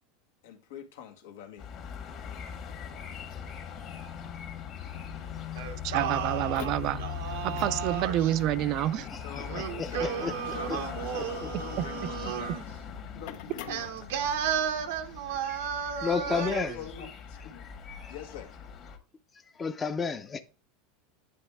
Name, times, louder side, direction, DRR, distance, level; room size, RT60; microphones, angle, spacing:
voice 1, 0.4-1.7 9.2-12.8 13.1-14.1 15.7-15.8 16.2-17.7 18.1-18.5, left 8 dB, 85° left, 1.5 m, -44 dB
sound 1, 1.6-19.0, left 7 dB, 40° left, 1.4 m, -40 dB
Singing, 5.6-8.4 9.4-12.6 13.7-16.8, right 8 dB, 80° right, 0.8 m, -33 dB
voice 2, 5.8-7.0 7.4-9.1 11.8-11.9, right 13 dB, 45° right, 0.3 m, -28 dB
sound 2, 6.3-14.6, left 10 dB, 65° left, 0.7 m, -48 dB
voice 3, 9.6-10.3 11.4-11.5 16.0-16.7 19.6-20.4, left 5 dB, 20° left, 0.6 m, -31 dB
9.3 x 3.4 x 3.4 m
supercardioid pair, 140°, 0 cm